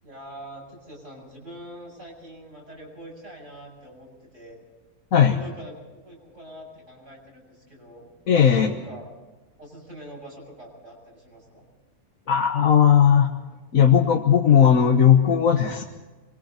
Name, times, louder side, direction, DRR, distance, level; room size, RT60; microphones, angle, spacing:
voice 1, 0.0-4.6 5.3-8.1 8.4-9.1 9.6-11.6, right 1 dB, 60° right, -2 dB, 7.8 m, -44 dB
voice 2, 8.3-8.7 12.3-13.3 13.7-15.8, left 8 dB, 70° left, 3 dB, 1.7 m, -17 dB
27.0 x 23.5 x 4.4 m, 1.2 s
omnidirectional pair, 1.5 m